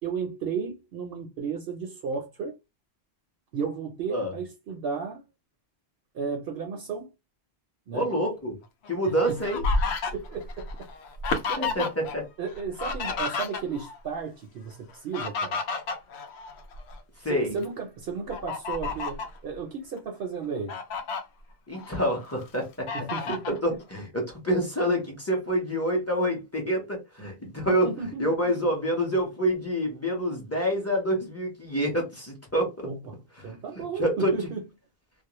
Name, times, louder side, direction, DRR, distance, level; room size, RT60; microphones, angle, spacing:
voice 1, 0.0-2.6 3.5-5.2 6.1-7.1 7.9-8.1 9.1-9.4 10.1-10.9 11.5-11.9 12.4-15.6 17.2-20.8 22.9-23.6 27.7-28.3 32.8-34.6, right 5 dB, 70° right, 0.8 m, -34 dB
voice 2, 7.9-8.6 8.9-9.6 11.6-12.2 17.2-17.5 21.7-22.9 23.3-27.9 28.2-32.9 33.8-34.3, equal, 15° left, 0.8 m, -27 dB
Fowl, 8.8-12.2 12.4-14.0 14.9-17.0 17.5-17.6 18.3-19.4 20.0-20.1 20.4-21.2 21.7-22.4 22.9-23.6, left 3 dB, 80° left, 0.8 m, -31 dB
2.4 x 2.0 x 2.9 m
omnidirectional pair, 1.1 m